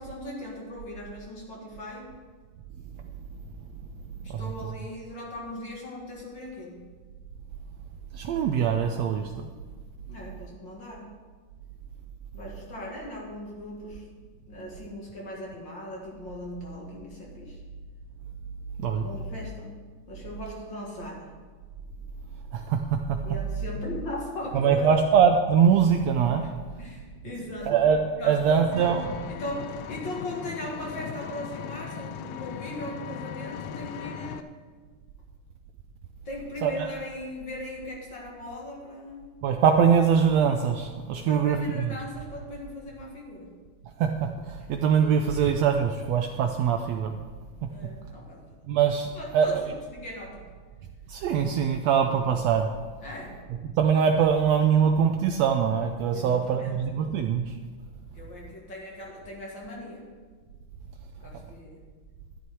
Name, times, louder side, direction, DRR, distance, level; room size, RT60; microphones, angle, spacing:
voice 1, 0.0-2.1 4.2-6.9 10.1-11.1 12.3-14.0 14.5-17.6 19.0-19.8 20.1-21.3 23.2-24.9 26.4-26.5 26.8-27.7 28.2-28.9 29.3-34.5 36.3-39.3 41.2-43.6 44.8-44.9 47.7-48.6 49.1-50.5 53.0-53.4 56.1-56.8 58.1-60.0 61.2-61.8, left 1 dB, 40° left, -2 dB, 2.2 m, -39 dB
voice 2, 8.1-9.5 18.8-19.1 22.5-23.2 24.5-26.4 27.7-29.1 36.6-36.7 39.4-41.9 44.0-47.2 48.7-49.6 51.1-52.7 53.8-57.5, right 7 dB, 75° right, 4 dB, 1.6 m, -23 dB
Vehicle, 28.7-34.4, left 9 dB, 80° left, 1.6 m, -38 dB
11.5 x 11.0 x 4.7 m, 1.5 s
omnidirectional pair, 3.5 m